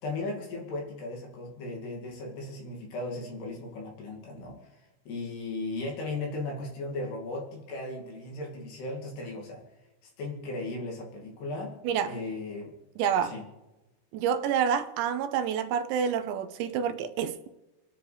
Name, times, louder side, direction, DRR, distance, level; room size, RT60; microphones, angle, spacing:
voice 1, 0.0-9.6 10.2-11.7 12.1-12.7 13.2-13.5, left 2 dB, 60° left, 4.3 m, -36 dB
voice 2, 11.8-12.2 13.0-13.3 14.1-17.5, right 8 dB, 80° right, 2.7 m, -28 dB
29.0 x 10.0 x 3.4 m
omnidirectional pair, 5.5 m